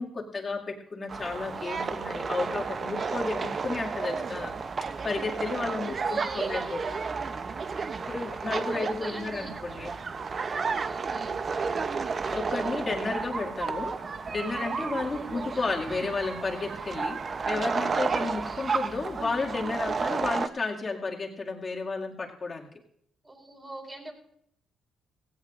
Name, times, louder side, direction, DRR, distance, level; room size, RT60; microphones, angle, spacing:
voice 1, 0.0-4.5 5.0-6.8 8.1-9.9 12.3-14.0 14.3-22.7, left 3 dB, 35° left, -1 dB, 2.2 m, -32 dB
sound 1, 1.1-20.5, right 5 dB, 40° right, 0.7 m, -32 dB
voice 2, 5.9-7.0 8.7-9.5 10.5-11.4 15.0-15.3 18.2-18.7 23.2-24.1, right 1 dB, 20° right, 1 dB, 4.3 m, -44 dB
17.0 x 16.5 x 2.6 m, 0.69 s
cardioid pair, 90°, 0 cm